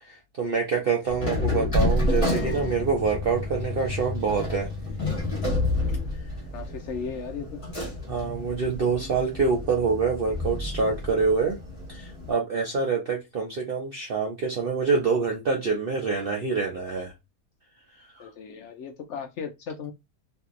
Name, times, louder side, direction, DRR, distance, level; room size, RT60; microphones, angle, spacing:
voice 1, 0.1-4.7 8.1-11.6 11.9-17.1, right 4 dB, 65° right, 0.5 m, -26 dB
sound 1, 1.1-12.3, left 2 dB, 25° left, 1.0 m, -29 dB
voice 2, 6.5-7.6 18.2-19.9, left 6 dB, 70° left, 0.7 m, -36 dB
2.7 x 2.6 x 2.3 m
omnidirectional pair, 1.6 m